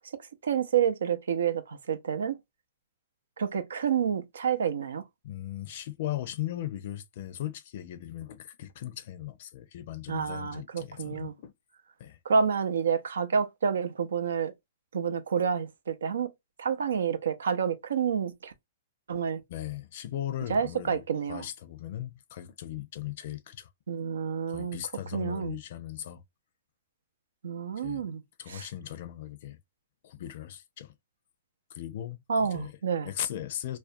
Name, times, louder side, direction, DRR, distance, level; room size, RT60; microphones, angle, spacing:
voice 1, 0.4-2.4 3.4-5.0 10.1-11.3 12.3-14.5 14.9-16.3 16.6-18.5 19.1-19.4 20.5-21.4 23.9-24.8 25.1-25.6 27.4-28.2 28.5-28.7 32.3-33.1, right 7 dB, 85° right, 0.5 m, -29 dB
voice 2, 5.2-11.5 12.0-12.2 19.5-23.7 24.5-26.2 27.8-28.0 28.4-29.6 30.0-30.9 31.7-32.7 33.0-33.8, left 12 dB, 60° left, 0.5 m, -38 dB
2.4 x 2.2 x 2.5 m
hypercardioid pair, 130°, 0 cm